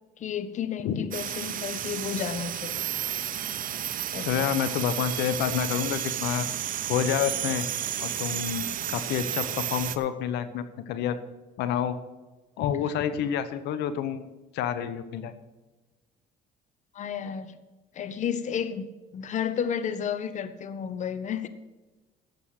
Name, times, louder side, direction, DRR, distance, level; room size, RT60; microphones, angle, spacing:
voice 1, 0.2-2.9 4.1-4.5 16.9-17.6 17.9-18.9 19.1-21.5, left 8 dB, 45° left, 12 dB, 0.9 m, -32 dB
sound 1, 1.1-10.0, right 10 dB, 55° right, 0.8 m, -32 dB
voice 2, 4.2-6.5 6.9-7.6 8.0-11.2 11.6-11.9 12.6-15.3, left 9 dB, 85° left, 12 dB, 0.9 m, -28 dB
12.0 x 7.9 x 6.5 m, 1.2 s
cardioid pair, 110°, 17 cm